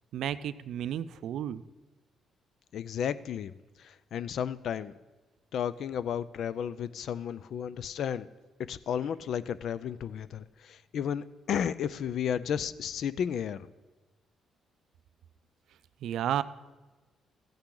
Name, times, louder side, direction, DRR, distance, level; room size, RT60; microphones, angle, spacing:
voice 1, 0.1-1.6 16.0-16.4, right 10 dB, 75° right, 15 dB, 0.4 m, -32 dB
voice 2, 2.7-3.5 3.8-4.9 5.5-8.3 8.6-13.7, left 8 dB, 70° left, 16 dB, 0.4 m, -33 dB
14.5 x 8.8 x 3.8 m, 1.2 s
cardioid pair, 90°, 0 cm